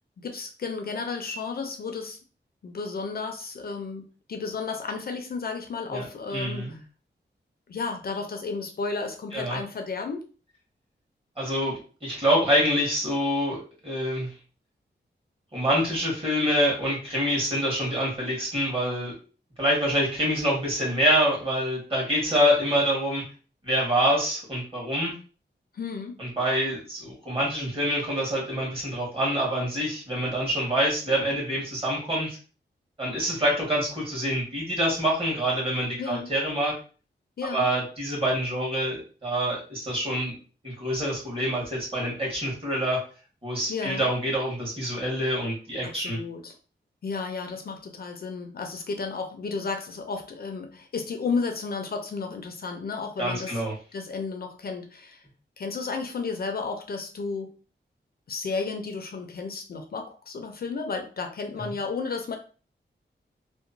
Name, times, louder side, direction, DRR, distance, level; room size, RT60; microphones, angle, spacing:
voice 1, 0.2-2.2 2.6-6.8 7.7-10.2 25.7-26.2 36.0-36.3 37.4-37.7 43.7-44.1 45.8-46.5 47.0-53.6 53.9-55.2 55.6-57.5 58.3-62.4, left 4 dB, 55° left, 5 dB, 0.4 m, -33 dB
voice 2, 6.3-6.8 9.3-9.6 11.4-13.6 13.8-14.3 15.5-19.1 19.6-23.2 23.6-25.1 26.2-32.4 33.0-36.7 37.5-40.3 40.6-43.0 43.4-46.2 53.2-53.7, equal, 30° right, -4 dB, 1.4 m, -26 dB
2.8 x 2.1 x 2.5 m, 0.37 s
wide cardioid pair, 130°, 19 cm